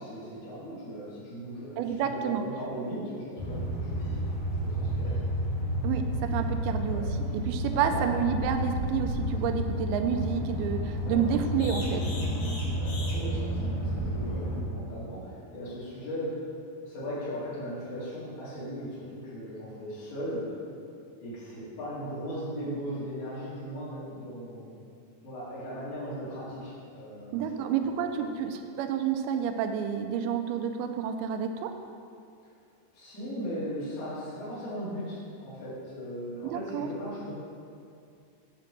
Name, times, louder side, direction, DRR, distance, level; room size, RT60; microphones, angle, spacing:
voice 1, 0.0-5.2 6.9-7.0 7.7-8.0 11.0-11.4 12.6-16.5 16.8-20.5 21.2-24.8 25.2-27.6 32.9-37.3, equal, 80° left, -10 dB, 4.2 m, -38 dB
voice 2, 1.8-2.4 5.8-7.0 7.3-12.0 27.3-31.7 36.4-36.9, right 7 dB, 85° right, 6 dB, 2.4 m, -29 dB
sound 1, 3.4-14.6, equal, 65° left, 2.0 m, -31 dB
9.0 x 3.4 x 6.0 m, 2.4 s
omnidirectional pair, 4.5 m